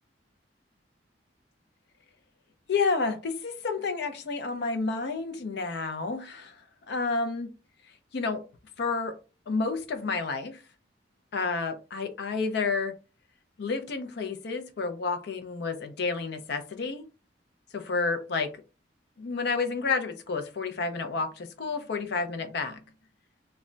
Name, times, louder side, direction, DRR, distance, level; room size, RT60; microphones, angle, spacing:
voice 1, 2.7-6.6 6.9-7.5 8.1-8.4 8.8-9.2 9.5-10.6 11.3-12.9 13.6-17.1 17.7-18.6 19.2-22.8, left 4 dB, 60° left, 0.5 m, -30 dB
2.1 x 2.1 x 3.7 m
head